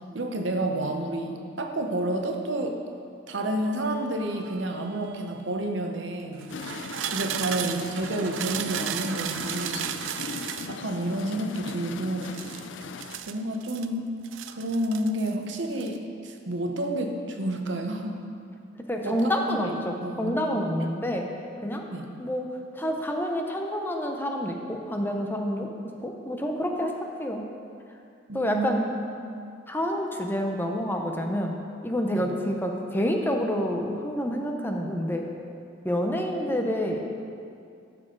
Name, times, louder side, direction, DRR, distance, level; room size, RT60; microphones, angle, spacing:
voice 1, 0.1-2.8 3.3-6.5 7.1-10.0 10.7-12.4 13.3-14.1 14.5-18.3 19.0-20.7 21.9-22.1 28.3-28.9 32.1-32.3, right 1 dB, 70° right, 3 dB, 0.9 m, -30 dB
sound 1, 3.6-5.5 6.3-10.8 12.2-13.9 14.2-15.4 15.6-16.0, right 10 dB, 85° right, 0.4 m, -35 dB
sound 2, 6.5-13.2, left 5 dB, 70° left, 0.5 m, -39 dB
voice 2, 18.9-21.3 21.6-21.8 22.2-25.7 26.0-27.4 28.3-28.9 29.7-35.3 35.8-37.0, equal, 10° left, 2 dB, 0.7 m, -28 dB
14.0 x 6.3 x 3.8 m, 2.4 s
head